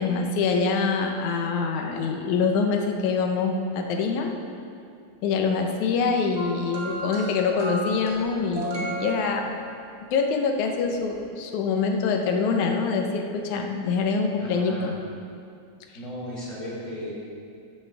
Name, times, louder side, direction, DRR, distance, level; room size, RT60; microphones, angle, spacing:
voice 1, 0.0-4.3 5.2-9.6 10.1-14.9, left 4 dB, 75° left, 3 dB, 2.4 m, -25 dB
sound 1, 6.4-9.9 11.0-11.1, equal, 25° right, 1.5 m, -34 dB
voice 2, 14.4-15.0 15.9-17.1, equal, 15° left, -9 dB, 3.5 m, -36 dB
15.5 x 10.5 x 3.5 m, 2.4 s
omnidirectional pair, 3.5 m